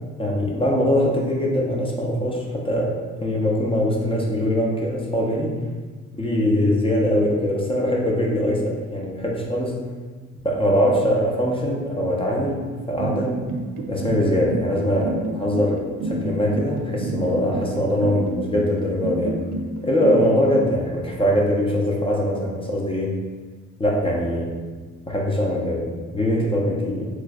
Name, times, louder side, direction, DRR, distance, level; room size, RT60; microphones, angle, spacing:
voice 1, 0.2-3.0 3.2-5.6 6.1-9.8 10.4-13.4 13.9-19.4 19.8-23.2 23.8-24.5 25.1-25.9 26.1-27.1, equal, 20° left, -2 dB, 0.7 m, -22 dB
sound 1, 13.0-20.6, right 3 dB, 80° right, 0.5 m, -28 dB
3.1 x 2.4 x 3.5 m, 1.4 s
cardioid pair, 90°, 30 cm